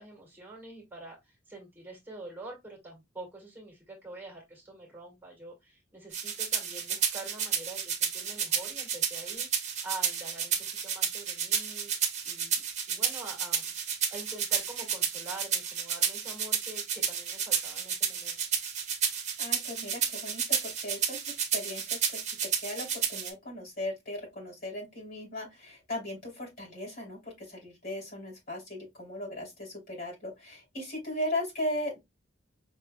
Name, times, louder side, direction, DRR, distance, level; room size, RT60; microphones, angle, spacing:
voice 1, 0.0-13.7 14.1-18.4, right 2 dB, 10° right, 1.9 m, -46 dB
sound 1, 6.1-23.3, right 7 dB, 35° right, 1.1 m, -31 dB
voice 2, 19.4-32.0, left 1 dB, 50° left, 3.2 m, -37 dB
5.4 x 3.3 x 2.2 m
head